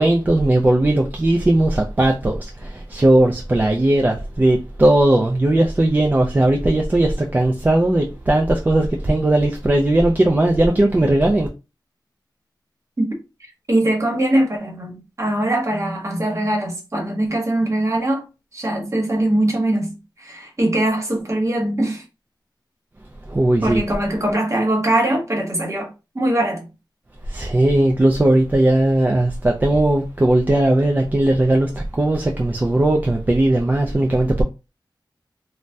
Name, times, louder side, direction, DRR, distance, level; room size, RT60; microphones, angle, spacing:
voice 1, 0.0-11.5 23.3-23.8 27.3-34.4, right 1 dB, 20° right, 0.3 m, -18 dB
voice 2, 13.7-18.2 18.5-22.0 23.6-26.7, right 1 dB, 40° right, 1.0 m, -21 dB
2.6 x 2.1 x 3.3 m
wide cardioid pair, 110°, 8 cm